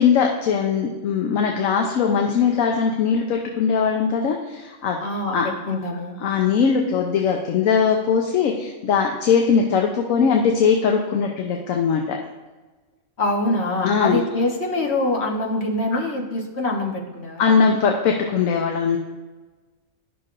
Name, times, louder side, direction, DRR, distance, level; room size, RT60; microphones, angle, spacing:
voice 1, 0.0-5.0 5.3-5.5 6.2-12.2 13.8-14.2 15.9-16.0 17.4-19.0, left 6 dB, 75° left, 2 dB, 1.1 m, -20 dB
voice 2, 5.0-5.4 5.7-6.2 13.2-17.5, left 2 dB, 55° left, 0 dB, 1.2 m, -24 dB
11.0 x 6.0 x 2.5 m, 1.3 s
omnidirectional pair, 1.4 m